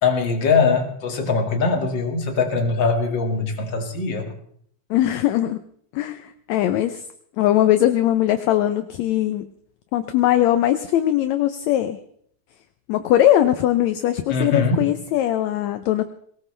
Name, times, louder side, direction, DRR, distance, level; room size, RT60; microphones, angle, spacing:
voice 1, 0.0-4.3 14.3-14.9, left 4 dB, 40° left, 3 dB, 2.5 m, -21 dB
voice 2, 4.9-5.6 5.9-7.0 7.4-9.5 9.9-12.0 12.9-16.0, left 12 dB, 75° left, 10 dB, 1.8 m, -20 dB
22.0 x 18.5 x 3.3 m, 0.65 s
omnidirectional pair, 3.7 m